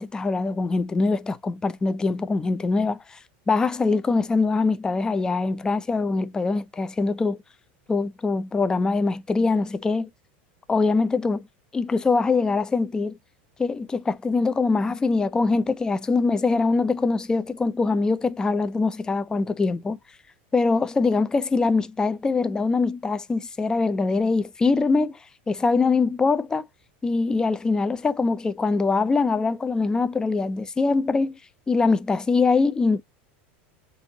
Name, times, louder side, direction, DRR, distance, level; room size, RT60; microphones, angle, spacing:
voice 1, 0.0-3.2 3.5-7.4 7.9-10.1 10.7-11.5 11.7-13.2 13.6-20.0 20.5-25.2 25.5-26.7 27.0-31.4 31.7-33.0, left 4 dB, 10° left, 0.4 m, -23 dB
5.3 x 2.4 x 2.8 m
supercardioid pair, 135°, 6 cm